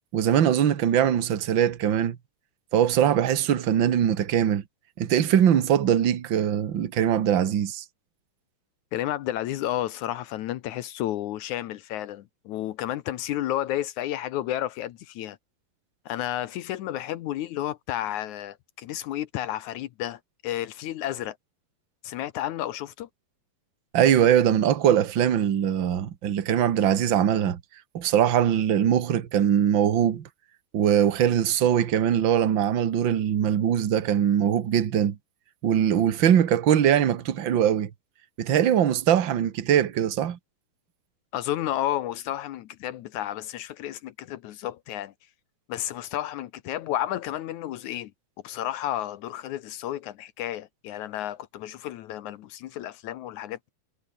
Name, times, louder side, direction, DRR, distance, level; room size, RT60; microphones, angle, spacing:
voice 1, 0.1-2.2 2.7-4.6 5.0-7.8 23.9-27.6 27.9-30.3 30.7-35.2 35.6-37.9 38.4-40.4, right 9 dB, 65° right, 1.1 m, -22 dB
voice 2, 8.9-15.4 16.1-21.4 22.0-23.1 41.3-45.1 45.7-48.1 48.4-53.7, left 13 dB, 70° left, 1.9 m, -32 dB
omnidirectional pair, 4.4 m